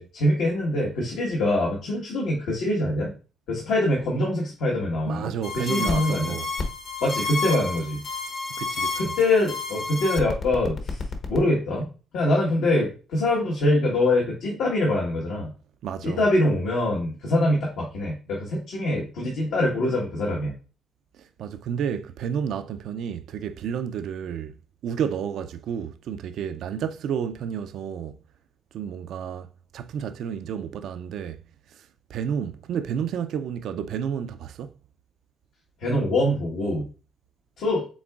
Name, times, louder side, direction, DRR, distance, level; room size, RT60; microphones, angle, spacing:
voice 1, 0.0-3.1 3.5-6.3 7.0-8.0 9.0-11.0 11.3-11.9 12.1-15.5 16.0-20.5 35.8-36.8 37.6-37.9, left 1 dB, 80° left, 1.3 m, -24 dB
voice 2, 5.0-6.5 8.6-9.1 15.8-16.2 21.2-24.6 24.8-28.2 28.7-31.4 31.7-34.7, right 8 dB, 75° right, 0.3 m, -31 dB
sound 1, 5.4-11.4, left 3 dB, 55° left, 1.0 m, -30 dB
6.0 x 3.7 x 2.4 m
cardioid pair, 85°, 0 cm